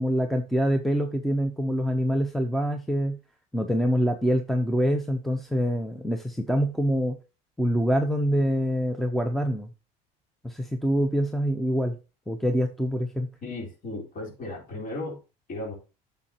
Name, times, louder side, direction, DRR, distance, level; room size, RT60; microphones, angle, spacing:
voice 1, 0.0-3.2 3.5-7.2 7.6-9.7 10.4-11.9 12.3-13.3, equal, ahead, 6 dB, 0.8 m, -25 dB
voice 2, 13.4-15.2 15.5-15.7, left 2 dB, 45° left, -2 dB, 4.2 m, -35 dB
9.6 x 6.7 x 3.0 m, 0.31 s
supercardioid pair, 100°, 20 cm